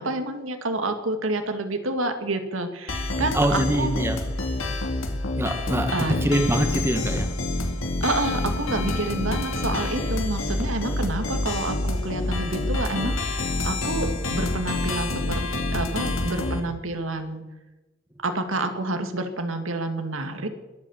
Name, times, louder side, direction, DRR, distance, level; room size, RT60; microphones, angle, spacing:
voice 1, 0.0-3.9 5.9-6.2 8.0-15.4 15.7-17.4 18.2-20.5, right 2 dB, 80° right, 7 dB, 1.9 m, -28 dB
sound 1, 2.9-16.6, left 2 dB, 80° left, 2.4 m, -27 dB
voice 2, 3.1-4.2 5.4-7.3, right 1 dB, 10° right, 6 dB, 1.5 m, -24 dB
22.0 x 8.5 x 7.1 m, 1.1 s
head